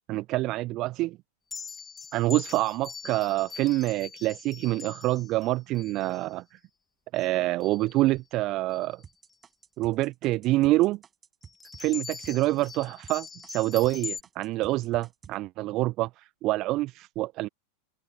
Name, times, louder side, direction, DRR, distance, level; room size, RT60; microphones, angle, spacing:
voice 1, 0.1-1.2 2.1-6.6 7.1-9.0 9.8-11.0 11.8-17.5, right 18 dB, 40° right, 1.2 m, -26 dB
sound 1, 1.5-6.3 7.1-7.3 7.6-8.0 8.7-8.9 11.4-14.2, left 4 dB, 15° left, 2.8 m, -42 dB
sound 2, 9.0-14.0 14.2-15.4, right 7 dB, 20° right, 6.6 m, -51 dB
figure-of-eight pair, 90°, 0 cm